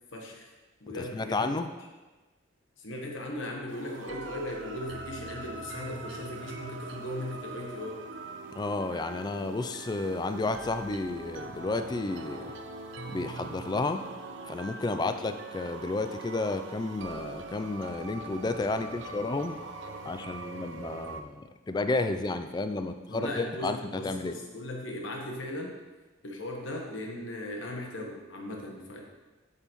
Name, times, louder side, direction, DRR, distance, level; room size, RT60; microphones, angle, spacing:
voice 1, 0.1-0.5 0.8-1.6 2.8-8.0 14.8-15.1 23.1-25.8 26.2-29.0, left 1 dB, 80° left, 1 dB, 1.2 m, -38 dB
voice 2, 0.9-1.7 8.6-12.5 13.1-14.0 14.5-19.6 20.1-24.4, left 3 dB, 20° left, 9 dB, 0.3 m, -32 dB
sound 1, 3.7-21.2, right 3 dB, 70° right, 0.5 m, -42 dB
Bass guitar, 12.2-16.5, left 4 dB, 10° right, 0.8 m, -53 dB
7.9 x 5.5 x 3.0 m, 1.2 s
head